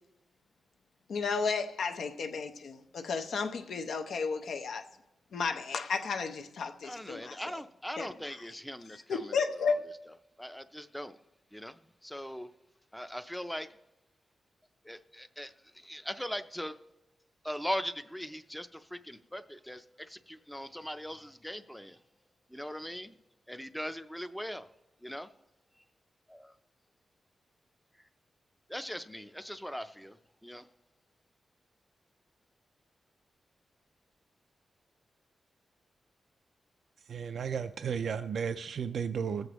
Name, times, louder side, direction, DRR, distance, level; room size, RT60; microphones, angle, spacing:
voice 1, 1.1-4.8 5.3-7.4 8.0-8.1 9.1-9.8, left 5 dB, 85° left, 0.7 m, -33 dB
voice 2, 6.8-9.8 10.1-11.2 11.5-12.5 12.9-13.7 14.8-16.8 17.4-22.0 22.5-23.1 23.5-24.7 25.0-25.3 26.3-26.5 28.7-30.7, equal, 5° left, 0.5 m, -40 dB
voice 3, 37.1-39.5, right 7 dB, 75° right, 0.3 m, -34 dB
21.0 x 7.9 x 3.0 m
wide cardioid pair, 125°, 0 cm